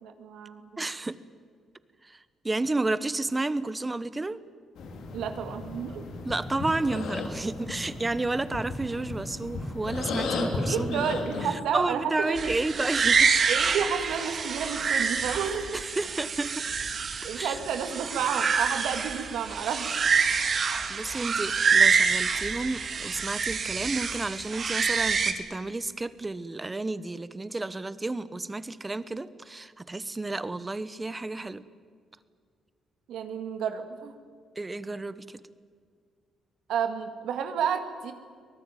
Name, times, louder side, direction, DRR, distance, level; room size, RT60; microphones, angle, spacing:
voice 1, 0.0-0.6 5.1-6.0 10.7-12.5 13.5-15.7 17.2-20.0 33.1-34.1 36.7-38.1, right 7 dB, 80° right, 7 dB, 2.2 m, -31 dB
voice 2, 0.8-1.2 2.0-4.4 6.2-11.1 11.4-13.3 15.7-16.7 17.3-17.6 20.9-31.6 34.5-35.4, right 2 dB, 20° right, 16 dB, 1.1 m, -31 dB
sound 1, 4.8-11.5, left 3 dB, 75° left, 3.4 m, -34 dB
sound 2, 12.4-25.3, right 5 dB, 45° right, 2.2 m, -26 dB
24.0 x 19.0 x 9.2 m, 2.1 s
cardioid pair, 90°, 0 cm